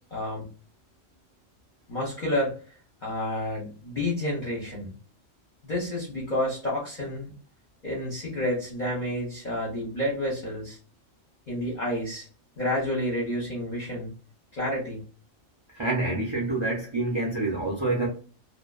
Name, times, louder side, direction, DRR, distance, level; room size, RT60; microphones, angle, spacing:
voice 1, 0.1-0.5 1.9-2.5 3.0-4.9 5.6-7.3 7.8-10.8 11.5-12.3 12.6-14.1 14.5-15.0, left 1 dB, 45° left, 0.7 m, -29 dB
voice 2, 15.7-18.1, right 2 dB, 50° right, 0.3 m, -27 dB
2.5 x 2.2 x 2.3 m
omnidirectional pair, 1.4 m